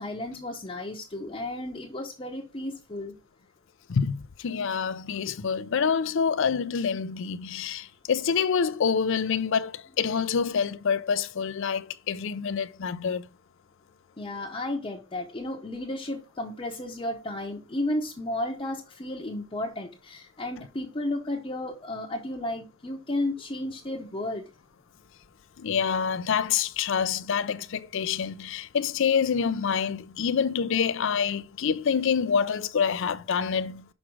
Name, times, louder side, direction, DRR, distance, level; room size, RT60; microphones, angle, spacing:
voice 1, 0.0-3.1 14.2-24.4, left 1 dB, 25° left, 0.8 m, -33 dB
voice 2, 3.9-13.3 25.6-33.9, left 6 dB, 65° left, 0.5 m, -27 dB
6.3 x 4.9 x 4.5 m
head